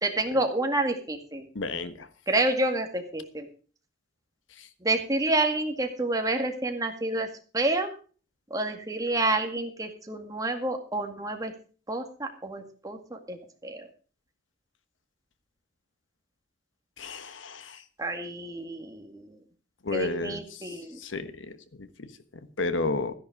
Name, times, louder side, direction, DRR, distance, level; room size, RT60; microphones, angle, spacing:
voice 1, 0.0-1.4 2.3-3.5 4.8-7.3 7.5-7.9 8.5-11.5 11.9-13.4 13.6-13.8 18.0-19.4 19.9-21.0, right 2 dB, 20° right, 4 dB, 2.0 m, -29 dB
voice 2, 1.5-1.9 17.0-17.7 19.8-20.4 21.0-21.3 22.6-23.1, left 3 dB, 80° left, 11 dB, 1.2 m, -30 dB
14.0 x 10.5 x 4.7 m, 0.39 s
head